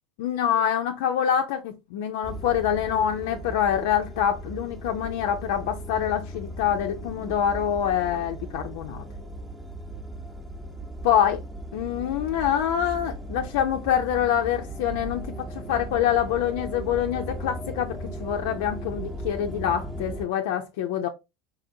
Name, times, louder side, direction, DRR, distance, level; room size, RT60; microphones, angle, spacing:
voice 1, 0.2-9.0 11.0-11.4 11.7-21.1, left 9 dB, 70° left, 0.4 m, -25 dB
sound 1, 2.2-20.3, right 1 dB, 15° right, 0.8 m, -37 dB
4.0 x 2.5 x 2.6 m
hypercardioid pair, 85°, 0 cm